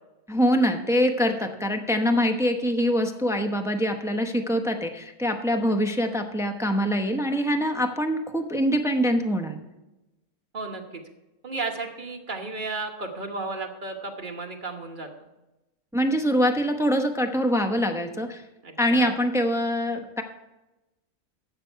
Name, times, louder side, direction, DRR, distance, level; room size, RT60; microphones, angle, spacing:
voice 1, 0.3-9.6 15.9-18.4 18.8-20.2, equal, 5° right, 5 dB, 0.5 m, -24 dB
voice 2, 10.5-11.0 11.4-15.1 18.6-19.1, right 3 dB, 35° right, 3 dB, 1.3 m, -33 dB
12.5 x 8.3 x 4.6 m, 1.0 s
omnidirectional pair, 1.5 m